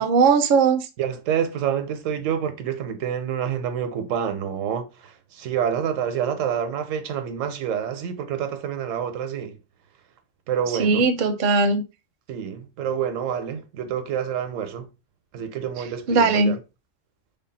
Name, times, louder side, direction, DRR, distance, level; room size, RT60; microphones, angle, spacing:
voice 1, 0.0-0.9 10.8-11.8 16.1-16.5, right 4 dB, 55° right, 0.6 m, -19 dB
voice 2, 1.0-9.6 10.5-11.1 12.3-14.9 15.3-16.6, right 8 dB, 85° right, 1.0 m, -27 dB
3.4 x 2.3 x 3.8 m
omnidirectional pair, 1.3 m